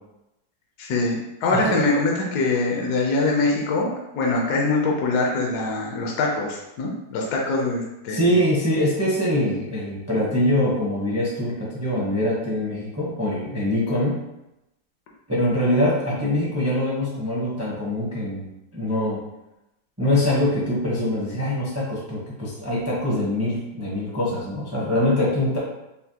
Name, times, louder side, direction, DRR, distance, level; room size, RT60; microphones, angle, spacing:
voice 1, 0.8-8.4, left 3 dB, 70° left, -1 dB, 1.1 m, -23 dB
voice 2, 8.1-14.2 15.3-18.5 18.7-19.2 20.0-25.6, left 1 dB, 15° right, -6 dB, 0.5 m, -23 dB
5.5 x 2.1 x 2.8 m, 0.90 s
omnidirectional pair, 2.0 m